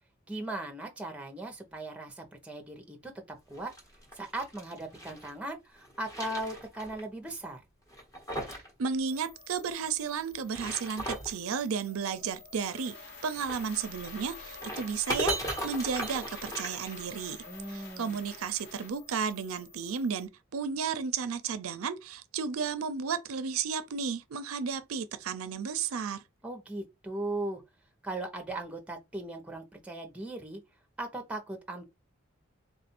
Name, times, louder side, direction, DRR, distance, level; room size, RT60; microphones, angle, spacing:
voice 1, 0.3-3.7 4.1-7.6 17.4-18.2 26.4-27.6 28.0-30.6 31.0-31.8, right 2 dB, 5° right, 0.8 m, -38 dB
sound 1, 3.5-5.3 5.8-7.0 7.3-7.4 7.9-8.7 9.0-9.1 10.3-11.4 13.3-17.4, right 1 dB, 20° left, 1.2 m, -37 dB
voice 2, 8.8-13.0 13.2-15.4 15.6-17.4 17.7-26.2, right 6 dB, 85° right, 0.5 m, -33 dB
sound 2, 9.1-20.3, left 4 dB, 80° left, 1.3 m, -50 dB
sound 3, 12.6-18.9, left 2 dB, 50° left, 1.4 m, -51 dB
3.6 x 2.5 x 4.3 m
head